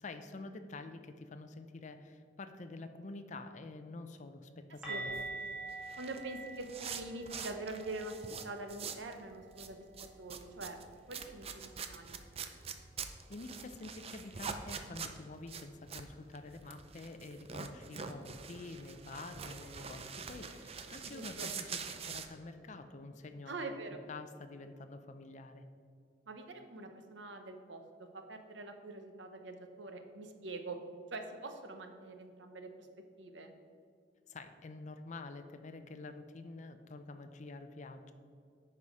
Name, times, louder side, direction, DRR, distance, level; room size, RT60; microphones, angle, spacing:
voice 1, 0.0-5.2 13.3-23.5 24.1-25.7 34.3-38.1, left 3 dB, 40° left, 8 dB, 0.5 m, -48 dB
sound 1, 4.8-10.6 10.9-11.1 11.4-11.6 14.8-14.9, right 3 dB, 5° right, 2.0 m, -47 dB
sound 2, 4.9-9.1 9.4-22.3, right 6 dB, 35° right, 0.5 m, -45 dB
voice 2, 4.9-5.3 6.0-10.8 11.1-12.2 21.0-21.5 23.5-24.0 26.3-30.8 31.1-32.9 33.2-33.5, right 2 dB, 80° right, 6 dB, 0.9 m, -45 dB
9.5 x 5.5 x 4.8 m, 2.3 s
head